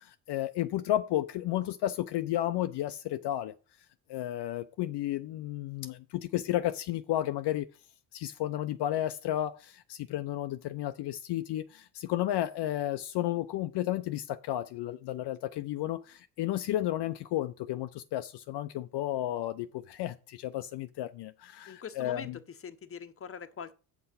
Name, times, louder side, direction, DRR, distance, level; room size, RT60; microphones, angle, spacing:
voice 1, 0.0-3.5 4.1-7.7 8.1-22.4, left 13 dB, 60° left, 0.6 m, -32 dB
voice 2, 21.7-22.3 22.6-23.7, left 6 dB, 30° left, 0.9 m, -43 dB
7.7 x 5.9 x 5.6 m
supercardioid pair, 70°, 45 cm